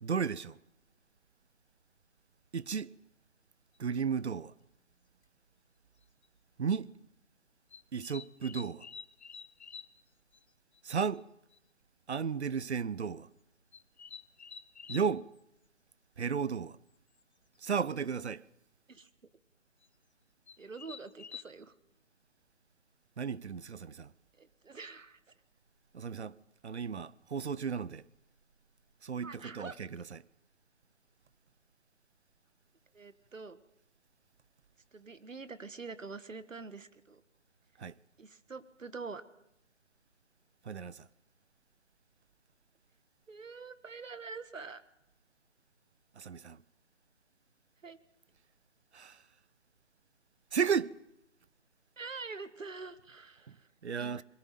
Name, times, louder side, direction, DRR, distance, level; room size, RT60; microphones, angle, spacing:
voice 1, 0.0-0.6 2.5-2.9 3.8-4.5 6.6-6.9 7.9-8.9 10.8-11.3 12.1-13.3 14.9-15.3 16.2-16.8 17.6-18.4 23.2-24.1 25.9-26.3 26.6-28.0 29.0-30.2 37.8-37.9 40.7-41.1 46.2-46.6 48.9-49.2 50.5-51.0 53.5-53.6 53.8-54.2, right 6 dB, 60° right, 0.7 m, -34 dB
sound 1, 3.7-3.8 5.2-5.3 6.0-6.3 7.7-10.0 10.3-10.4 10.7-10.8 11.1-11.2 11.5-11.6 12.4-12.7 13.7-15.1 17.2-17.3 17.6-17.9 19.8-19.9 20.5-21.4, left 6 dB, 60° left, 0.9 m, -48 dB
voice 2, 20.6-21.7 24.4-25.2 29.2-29.8 32.9-33.6 34.9-37.2 38.2-39.2 43.3-44.8 47.8-48.0 52.0-53.7 53.9-54.2, right 4 dB, 90° right, 1.7 m, -45 dB
21.0 x 16.0 x 9.2 m
figure-of-eight pair, 170°, 37 cm